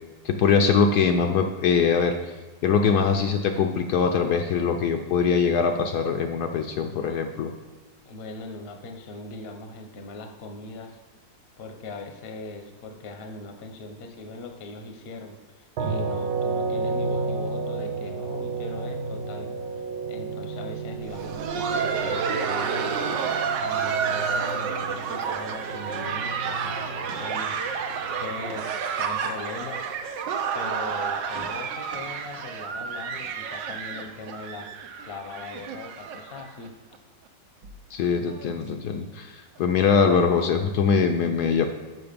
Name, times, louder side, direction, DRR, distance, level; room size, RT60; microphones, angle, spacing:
voice 1, 0.2-2.3 2.6-7.5 37.9-41.7, left 5 dB, 70° left, 5 dB, 1.0 m, -22 dB
voice 2, 8.0-11.0 11.6-23.0 23.6-29.8 30.5-34.7 35.0-36.7, left 3 dB, 45° left, 4 dB, 0.8 m, -40 dB
sound 1, 15.8-28.8, right 4 dB, 70° right, 0.9 m, -33 dB
Laughter, 21.0-36.7 36.9-37.0 37.6-37.7 38.3-38.5 39.6-39.7, right 6 dB, 85° right, 1.4 m, -30 dB
6.9 x 6.1 x 5.1 m, 1.3 s
omnidirectional pair, 1.9 m